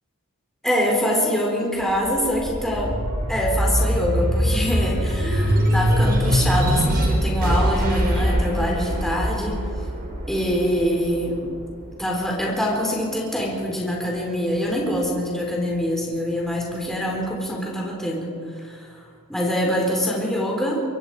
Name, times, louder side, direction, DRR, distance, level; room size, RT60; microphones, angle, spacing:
voice 1, 0.6-3.0 3.3-9.6 10.3-11.4 12.0-19.0 19.3-20.8, equal, ahead, -2 dB, 4.2 m, -24 dB
sound 1, 1.8-12.6 13.1-14.3, equal, 45° right, 4.7 m, -23 dB
25.5 x 23.0 x 5.0 m, 2.3 s
head